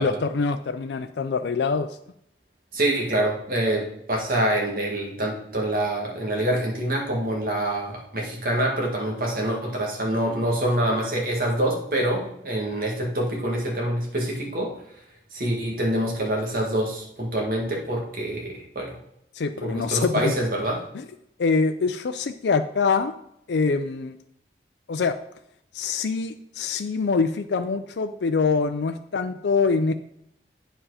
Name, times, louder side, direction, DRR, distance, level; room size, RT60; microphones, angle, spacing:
voice 1, 0.0-1.9 19.3-20.3 20.9-21.0 21.4-23.2 23.5-24.1 24.9-25.2 25.7-29.9, left 4 dB, 80° left, 8 dB, 0.4 m, -24 dB
voice 2, 2.7-14.7 15.3-19.0 19.6-20.8, right 1 dB, 50° right, -1 dB, 2.0 m, -26 dB
8.9 x 4.8 x 4.9 m, 0.74 s
head